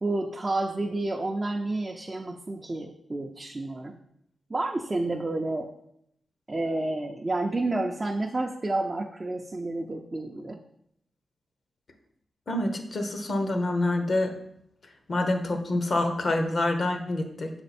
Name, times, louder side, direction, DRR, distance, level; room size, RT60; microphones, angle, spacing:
voice 1, 0.0-4.0 4.5-5.7 6.5-10.6, right 2 dB, 30° right, 1 dB, 0.5 m, -30 dB
voice 2, 12.5-14.3 15.1-17.5, left 2 dB, 55° left, 5 dB, 0.9 m, -26 dB
6.2 x 4.4 x 4.2 m, 0.75 s
wide cardioid pair, 95°, 0 cm